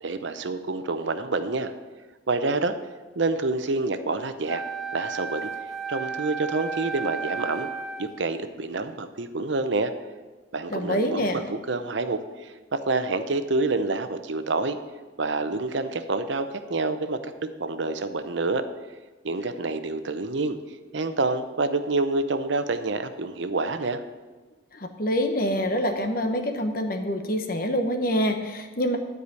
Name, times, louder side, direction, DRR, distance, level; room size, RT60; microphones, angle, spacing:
voice 1, 0.0-1.7 2.3-2.8 3.2-4.6 4.9-5.5 5.9-7.7 8.0-9.9 10.5-14.8 15.2-18.6 19.2-20.6 20.9-24.0, right 3 dB, 70° right, 9 dB, 0.7 m, -27 dB
Wind instrument woodwind instrument, 4.5-8.2, right 5 dB, ahead, 0.8 m, -33 dB
voice 2, 10.7-11.4 24.7-29.0, equal, 45° left, 6 dB, 1.1 m, -26 dB
12.0 x 4.9 x 8.3 m, 1.3 s
head